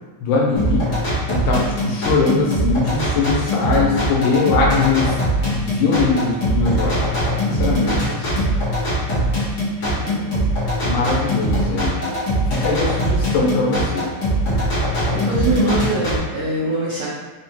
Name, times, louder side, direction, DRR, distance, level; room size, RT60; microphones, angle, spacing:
voice 1, 0.2-0.9 1.3-5.2 5.5-7.1 7.4-7.9 10.8-12.1 12.5-14.1, left 4 dB, 90° left, -4 dB, 2.3 m, -21 dB
sound 1, 0.6-16.2, equal, 55° left, 1.2 m, -21 dB
voice 2, 7.8-8.4 9.8-10.3 15.1-17.1, right 1 dB, 85° right, -10 dB, 1.1 m, -24 dB
5.1 x 2.2 x 2.8 m, 1.3 s
omnidirectional pair, 3.6 m